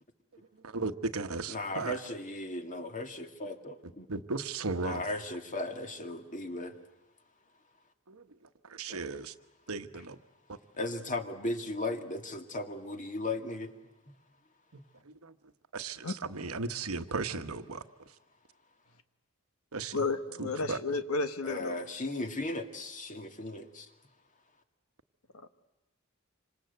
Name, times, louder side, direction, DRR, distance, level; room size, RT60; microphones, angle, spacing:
voice 1, 0.6-1.9 4.1-5.0 8.1-8.2 8.6-9.3 9.7-10.2 14.7-15.3 15.7-17.8 19.7-20.0 20.4-20.8, right 3 dB, 85° right, 9 dB, 1.2 m, -36 dB
voice 2, 1.5-4.1 4.8-6.8 8.9-9.0 10.8-13.7 21.4-23.9, left 2 dB, 35° left, 6 dB, 2.1 m, -36 dB
voice 3, 19.9-21.8, left 3 dB, 85° left, 10 dB, 1.4 m, -32 dB
27.0 x 25.5 x 8.1 m, 1.0 s
head